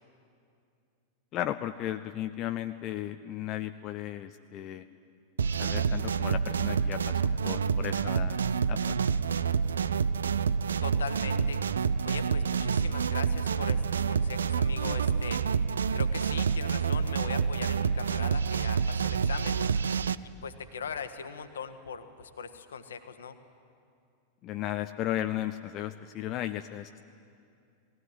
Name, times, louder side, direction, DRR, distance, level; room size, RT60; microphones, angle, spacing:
voice 1, 1.3-4.9 5.6-8.4 8.7-9.2 24.4-27.0, left 12 dB, 35° left, 8 dB, 0.5 m, -35 dB
sound 1, 5.4-20.2, right 6 dB, 70° right, 0.4 m, -28 dB
voice 2, 10.8-11.6 12.0-15.4 15.9-19.6 20.4-23.4, left 6 dB, 65° left, 9 dB, 1.3 m, -40 dB
19.0 x 16.5 x 9.6 m, 2.4 s
figure-of-eight pair, 90°, 0 cm